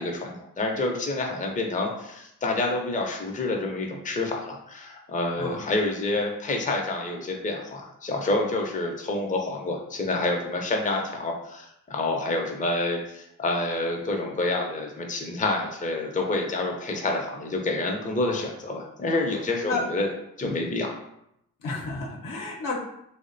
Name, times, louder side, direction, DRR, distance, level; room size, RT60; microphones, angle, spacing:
voice 1, 0.0-20.1 20.4-20.9, left 2 dB, 20° left, 1 dB, 0.5 m, -28 dB
voice 2, 21.6-22.7, left 3 dB, 65° left, -1 dB, 0.7 m, -32 dB
2.4 x 2.0 x 2.5 m, 0.78 s
supercardioid pair, 45°, 35 cm